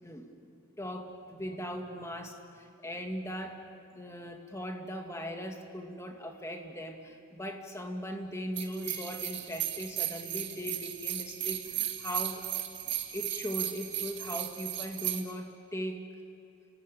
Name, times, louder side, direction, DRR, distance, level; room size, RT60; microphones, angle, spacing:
voice 1, 0.0-3.5 4.0-12.4 13.1-16.1, equal, 15° left, 3 dB, 2.2 m, -39 dB
sound 1, 8.6-15.2, right 13 dB, 55° right, 2.1 m, -35 dB
29.5 x 18.5 x 9.1 m, 2.8 s
head